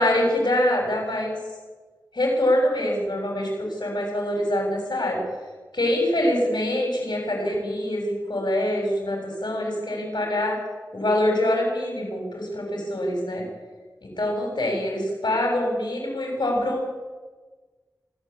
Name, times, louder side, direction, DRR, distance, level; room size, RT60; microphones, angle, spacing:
voice 1, 0.0-1.4 2.1-5.2 5.7-10.6 10.9-13.4 14.0-16.8, left 1 dB, 80° left, 1 dB, 7.7 m, -24 dB
27.5 x 13.5 x 8.6 m, 1.4 s
wide cardioid pair, 45°, 8 cm